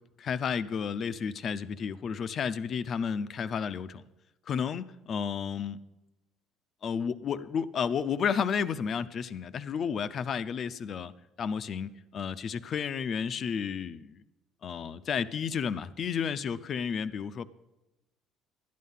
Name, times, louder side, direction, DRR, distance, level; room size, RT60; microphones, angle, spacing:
voice 1, 0.2-4.0 4.5-5.8 6.8-11.1 11.4-14.2 14.6-17.5, left 7 dB, 50° left, 15 dB, 0.6 m, -32 dB
12.0 x 9.5 x 5.7 m, 0.99 s
hypercardioid pair, 65°, 0 cm